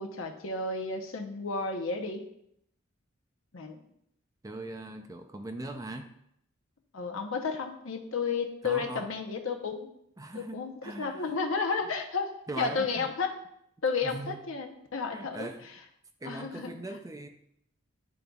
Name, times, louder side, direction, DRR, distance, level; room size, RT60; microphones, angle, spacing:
voice 1, 0.0-2.2 3.5-3.8 6.9-9.9 10.3-13.3 13.8-15.5 16.2-16.7, left 4 dB, 75° left, 4 dB, 0.8 m, -32 dB
voice 2, 4.4-6.1 8.6-9.1 10.2-11.4 11.8-11.9 12.5-13.1 14.0-14.4 15.1-15.7 16.2-17.3, right 2 dB, 15° right, 5 dB, 0.4 m, -40 dB
10.5 x 3.8 x 2.3 m, 0.75 s
head